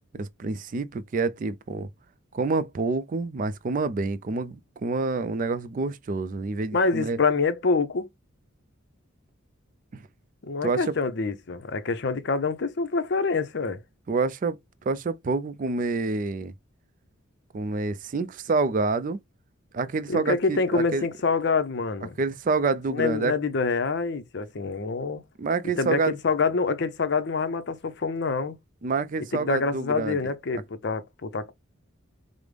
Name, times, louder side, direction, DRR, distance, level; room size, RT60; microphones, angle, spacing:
voice 1, 0.1-1.9 2.3-7.2 9.9-10.0 10.6-10.9 14.1-14.6 14.9-16.5 17.5-19.2 19.7-21.1 22.2-23.3 25.4-26.1 28.8-30.2, right 3 dB, 40° right, 0.4 m, -27 dB
voice 2, 6.7-8.1 10.4-13.8 20.1-22.2 22.9-25.2 25.8-28.6 29.3-31.5, left 4 dB, 55° left, 0.6 m, -26 dB
5.1 x 2.0 x 3.2 m
head